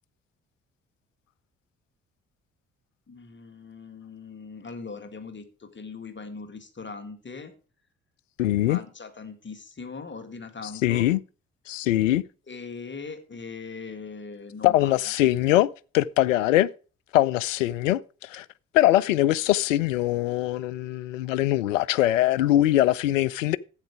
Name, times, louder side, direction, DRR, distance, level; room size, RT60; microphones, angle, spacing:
voice 1, 3.1-7.5 8.7-11.1 12.5-15.0, left 4 dB, 30° left, 2.1 m, -40 dB
voice 2, 8.4-8.8 10.6-11.2 11.7-12.2 14.6-15.7 15.9-16.7 17.1-18.5 18.7-23.6, left 14 dB, 75° left, 0.5 m, -22 dB
11.5 x 8.1 x 4.8 m
figure-of-eight pair, 40°, 39 cm